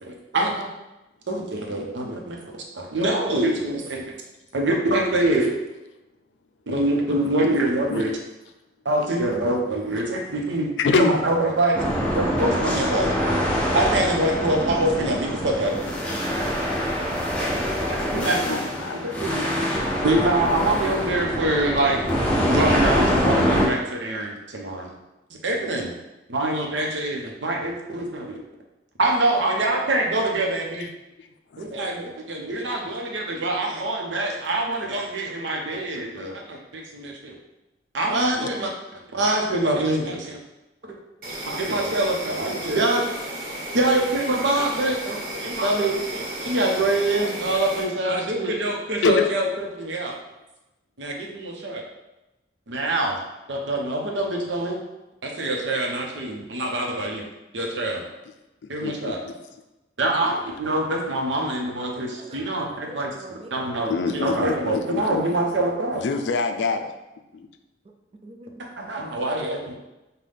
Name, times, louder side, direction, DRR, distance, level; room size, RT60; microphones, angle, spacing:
voice 1, 0.0-0.7 1.3-2.4 2.7-4.0 4.5-5.5 6.7-8.2 8.8-10.7 11.0-11.8 12.1-13.1 13.7-15.8 18.0-18.6 19.0-19.3 20.0-22.0 22.5-24.9 25.4-25.9 26.3-28.4 29.0-30.9 31.6-37.3 37.9-38.7 39.1-40.4 40.8-40.9 41.5-43.1 43.7-50.2 51.0-51.8 52.7-53.2 53.5-54.8 55.2-57.2 57.5-58.0 58.7-59.2 60.0-63.1 63.5-66.0 68.8-69.7, right 1 dB, 90° right, 0 dB, 0.8 m, -25 dB
voice 2, 10.8-11.1 18.1-19.0 19.3-20.1 30.8-30.9 31.2-31.7 38.4-38.5 49.0-49.4 58.8-59.3 60.2-60.3 63.9-65.2 65.9-66.9 67.3-67.5, left 4 dB, 75° left, 7 dB, 0.4 m, -26 dB
sound 1, 11.7-23.7, equal, 5° left, 0.7 m, -24 dB
Insect, 41.2-47.8, right 1 dB, 55° right, 1.1 m, -34 dB
voice 3, 62.0-63.6 64.1-64.2 67.8-68.6, right 2 dB, 35° right, 3 dB, 0.4 m, -44 dB
5.5 x 2.3 x 3.4 m, 0.99 s
head